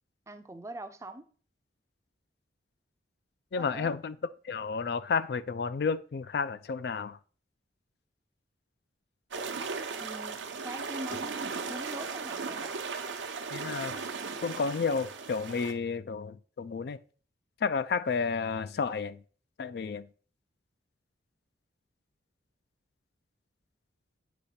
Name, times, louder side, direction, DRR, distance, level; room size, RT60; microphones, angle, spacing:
voice 1, 0.3-1.3 3.6-4.0 10.0-12.8, right 1 dB, 15° right, 0.5 m, -43 dB
voice 2, 3.5-4.2 4.4-7.2 13.5-14.0 14.4-17.0 17.6-19.2 19.6-20.1, left 5 dB, 60° left, 0.3 m, -31 dB
sound 1, 9.3-15.7, right 5 dB, 90° right, 0.8 m, -37 dB
8.3 x 3.1 x 5.7 m
head